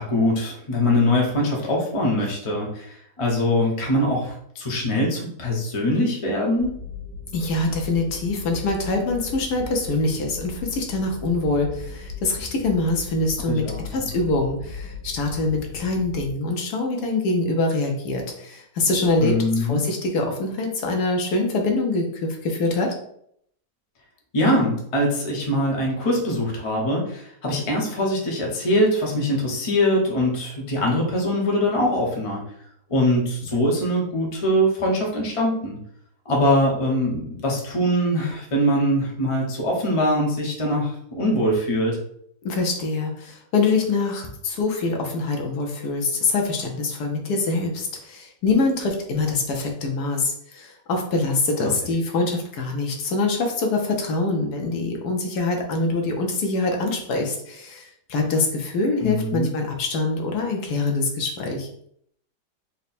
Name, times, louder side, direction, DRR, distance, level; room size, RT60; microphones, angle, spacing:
voice 1, 0.0-6.8 13.5-14.0 19.2-19.8 24.3-32.4 32.9-35.8 36.2-42.0 51.6-51.7 59.0-59.5, left 1 dB, 30° left, -1 dB, 0.6 m, -22 dB
sound 1, 6.6-16.3, left 4 dB, 80° right, 1.7 m, -37 dB
voice 2, 7.3-13.6 13.9-22.9 42.4-61.7, left 3 dB, 70° left, 2 dB, 1.2 m, -24 dB
4.2 x 2.1 x 4.1 m, 0.68 s
omnidirectional pair, 1.8 m